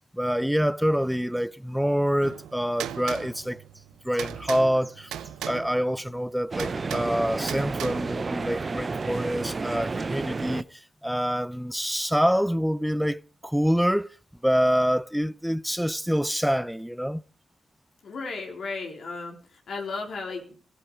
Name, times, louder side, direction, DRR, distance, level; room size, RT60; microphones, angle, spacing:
voice 1, 0.1-3.6 4.0-5.2 5.4-14.1 14.4-17.2, equal, 5° right, 0.6 m, -26 dB
sound 1, 2.2-9.7, right 10 dB, 90° right, 0.8 m, -39 dB
sound 2, 6.5-10.6, right 4 dB, 45° right, 0.7 m, -31 dB
voice 2, 18.0-20.6, left 3 dB, 70° left, 3.9 m, -35 dB
15.5 x 14.5 x 4.8 m
supercardioid pair, 50°, 0 cm